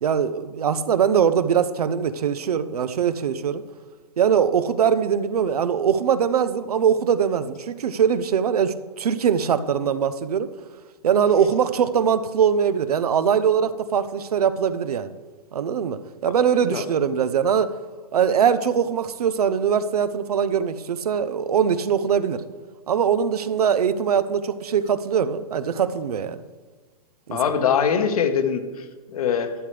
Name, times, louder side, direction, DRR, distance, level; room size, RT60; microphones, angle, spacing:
voice 1, 0.0-3.6 4.2-10.5 11.0-15.1 15.5-17.7 18.1-22.4 22.9-26.4 27.3-27.4, right 7 dB, 80° right, 0.8 m, -22 dB
voice 2, 27.3-29.5, left 7 dB, 70° left, 1.4 m, -23 dB
12.0 x 11.0 x 3.4 m
hypercardioid pair, 140°, 19 cm